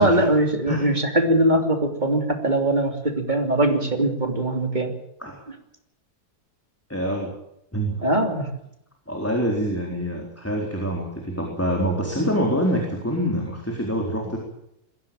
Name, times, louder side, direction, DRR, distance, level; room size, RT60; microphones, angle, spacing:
voice 1, 0.0-4.9 8.0-8.5, right 1 dB, 25° right, 5 dB, 3.1 m, -21 dB
voice 2, 6.9-7.3 7.7-8.1 9.1-14.4, equal, 10° left, 0 dB, 4.1 m, -25 dB
21.5 x 16.5 x 9.0 m, 0.79 s
omnidirectional pair, 1.7 m